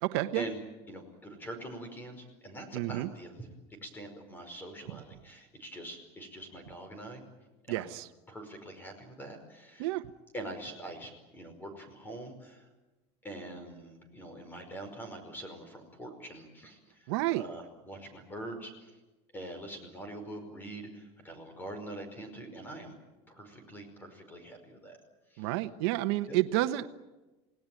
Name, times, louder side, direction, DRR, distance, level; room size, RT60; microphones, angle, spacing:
voice 1, 0.0-0.4 2.7-3.1 7.7-8.1 9.8-10.0 17.1-17.4 25.4-26.9, right 16 dB, 70° right, 10 dB, 1.1 m, -30 dB
voice 2, 0.9-7.2 7.7-7.9 8.3-9.9 10.3-12.7 13.2-18.9 19.3-23.0 23.3-25.0 25.3-25.6 26.3-26.4, right 1 dB, 15° left, 7 dB, 5.1 m, -44 dB
29.0 x 18.5 x 9.2 m, 1.1 s
cardioid pair, 165°, 14 cm